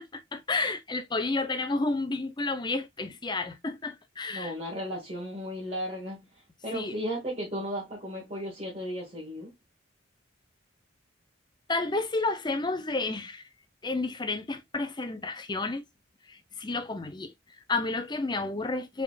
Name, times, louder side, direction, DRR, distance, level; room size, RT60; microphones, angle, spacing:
voice 1, 0.0-4.5 6.7-7.0 11.7-13.5 13.8-15.8 16.3-19.0, left 3 dB, 20° left, 0.6 m, -31 dB
voice 2, 4.3-6.3 6.6-9.5, equal, 30° right, 1.5 m, -35 dB
4.8 x 3.6 x 2.3 m
head